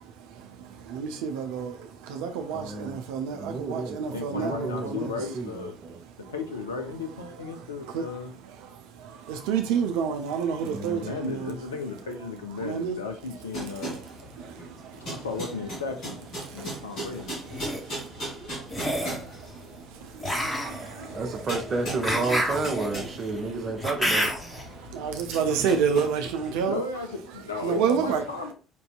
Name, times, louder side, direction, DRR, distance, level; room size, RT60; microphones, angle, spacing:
voice 1, 1.0-1.7 2.1-5.1 7.9-8.0 9.3-11.5 12.6-13.0 24.9-26.8 27.6-28.2, right 7 dB, 70° right, 0.4 m, -28 dB
voice 2, 2.5-3.0 3.3-5.1 5.3-6.0 10.6-11.1 14.4-14.5 21.1-24.3 27.8-28.1, right 3 dB, 45° right, 0.9 m, -32 dB
voice 3, 4.1-5.8 6.3-8.3 10.9-14.0 15.1-17.6 26.6-28.5, left 4 dB, 80° left, 0.5 m, -35 dB
sound 1, 13.5-26.6, right 1 dB, 55° left, 1.9 m, -39 dB
sound 2, 17.3-17.8 18.7-19.2 20.2-24.6, equal, 20° left, 1.5 m, -29 dB
5.3 x 2.7 x 2.2 m
figure-of-eight pair, 55°, 0 cm